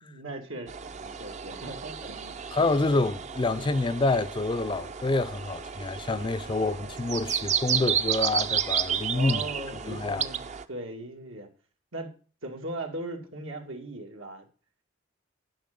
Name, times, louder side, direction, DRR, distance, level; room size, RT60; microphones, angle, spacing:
voice 1, 0.0-2.4 2.8-3.0 9.0-11.5 11.9-12.1 12.4-14.5, right 2 dB, 90° right, 2.4 m, -39 dB
sound 1, 0.7-10.6, right 8 dB, 35° right, 0.5 m, -32 dB
voice 2, 2.5-9.4 9.8-10.2, left 2 dB, 25° left, 0.4 m, -27 dB
10.5 x 5.6 x 6.8 m
head